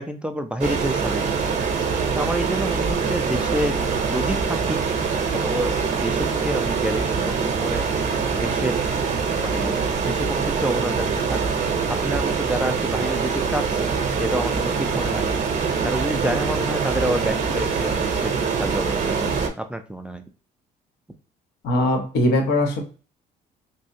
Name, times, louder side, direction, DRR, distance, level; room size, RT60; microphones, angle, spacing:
voice 1, 0.0-3.8 4.1-4.8 5.4-7.8 8.3-8.8 9.4-11.4 11.9-15.4 15.8-20.3, right 1 dB, 5° right, 7 dB, 0.3 m, -29 dB
sound 1, 0.6-19.5, right 5 dB, 45° right, 0.7 m, -24 dB
voice 2, 21.6-22.8, left 1 dB, 85° left, 3 dB, 0.9 m, -20 dB
3.2 x 2.7 x 2.6 m, 0.37 s
cardioid pair, 110°, 17 cm